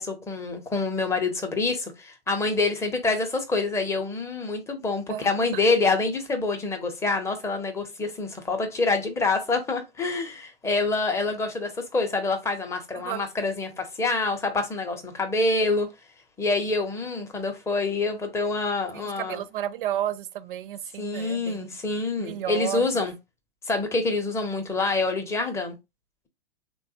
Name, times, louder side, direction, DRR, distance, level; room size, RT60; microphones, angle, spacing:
voice 1, 0.0-15.9 16.4-19.4 21.0-23.1 23.7-25.7, left 3 dB, 10° left, 0.6 m, -26 dB
voice 2, 5.1-5.6 12.9-13.2 18.9-21.7 22.2-23.1, right 12 dB, 60° right, 0.5 m, -32 dB
3.3 x 2.2 x 2.7 m
hypercardioid pair, 115°, 30 cm